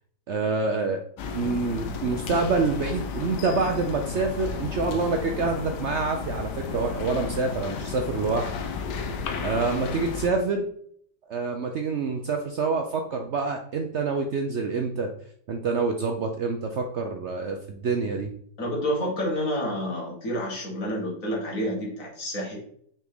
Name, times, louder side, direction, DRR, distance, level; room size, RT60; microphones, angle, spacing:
voice 1, 0.3-1.0 1.3-8.5 9.4-10.7 11.3-15.1 15.5-18.3, right 4 dB, 65° right, 4 dB, 0.7 m, -27 dB
sound 1, 1.2-10.3, left 5 dB, 80° left, 1.3 m, -33 dB
voice 2, 18.6-22.6, equal, 50° left, -2 dB, 2.3 m, -29 dB
5.7 x 4.3 x 3.9 m, 0.64 s
omnidirectional pair, 1.8 m